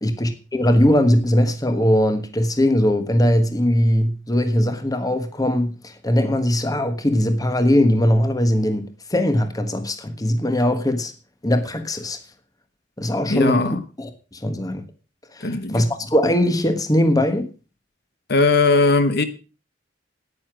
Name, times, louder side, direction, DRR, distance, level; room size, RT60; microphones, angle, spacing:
voice 1, 0.0-11.1 11.4-12.2 13.0-13.6 14.0-14.8 15.3-17.5, left 1 dB, 20° left, 1.3 m, -20 dB
voice 2, 13.3-13.8 15.4-15.8 18.3-19.2, left 3 dB, 60° left, 1.2 m, -18 dB
9.7 x 9.5 x 6.2 m
head